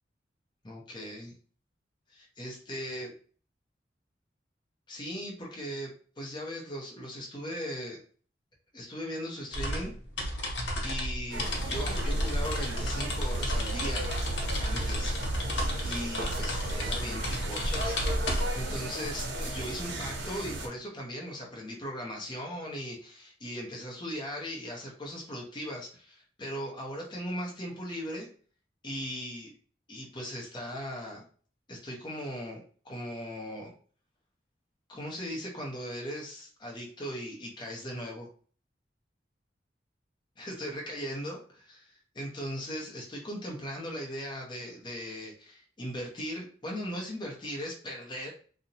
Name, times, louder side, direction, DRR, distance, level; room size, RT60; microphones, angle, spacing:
voice 1, 0.6-1.3 2.1-3.1 4.9-8.0 8.7-9.9 10.8-14.1 14.6-15.1 15.8-18.0 18.5-28.3 28.8-29.5 29.9-31.3 31.7-33.7 34.9-38.3 40.4-48.3, equal, 25° left, -1 dB, 0.6 m, -38 dB
sound 1, 9.5-18.7, equal, 80° left, 0.7 m, -32 dB
sound 2, 11.3-20.7, right 1 dB, 80° right, 0.6 m, -35 dB
2.8 x 2.0 x 2.6 m, 0.43 s
head